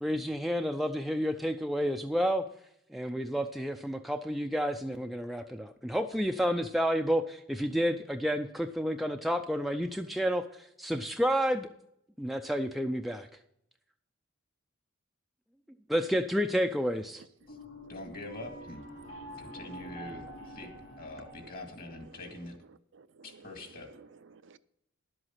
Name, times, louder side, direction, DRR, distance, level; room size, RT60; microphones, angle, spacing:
voice 1, 0.0-2.5 2.9-11.7 12.2-13.3 15.9-17.2, equal, ahead, 0.4 m, -30 dB
sound 1, 17.4-22.5, equal, 85° left, 3.6 m, -47 dB
voice 2, 17.9-18.9 19.4-20.7 21.0-22.6 23.2-23.9, left 2 dB, 50° left, 2.1 m, -44 dB
voice 3, 19.3-20.3 20.6-20.7 21.4-21.5 21.9-22.4 22.7-24.6, right 4 dB, 65° right, 0.5 m, -55 dB
11.0 x 7.9 x 5.7 m
head